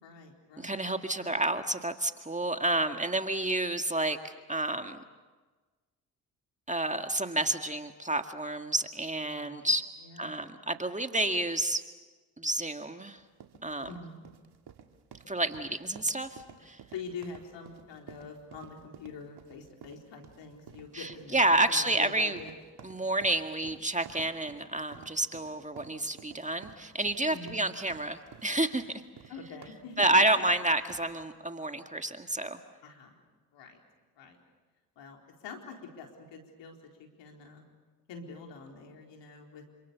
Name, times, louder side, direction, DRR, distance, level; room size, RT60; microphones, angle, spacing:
voice 1, 0.0-0.8 1.1-1.4 9.4-9.7 10.0-10.4 13.9-14.2 16.9-22.5 27.3-27.6 29.3-30.3 32.8-33.1 33.5-33.8 34.2-34.4 35.0-37.6 38.1-39.6, left 5 dB, 75° left, 2 dB, 4.4 m, -45 dB
voice 2, 0.6-5.0 6.7-9.8 10.2-11.8 12.4-13.2 13.6-13.9 15.3-16.8 20.9-22.4 22.8-28.8 30.0-32.6, right 1 dB, 15° right, 7 dB, 1.9 m, -29 dB
sound 1, 13.2-31.2, right 7 dB, 60° right, 2.3 m, -53 dB
28.0 x 26.5 x 7.1 m, 1.3 s
hypercardioid pair, 50°, 44 cm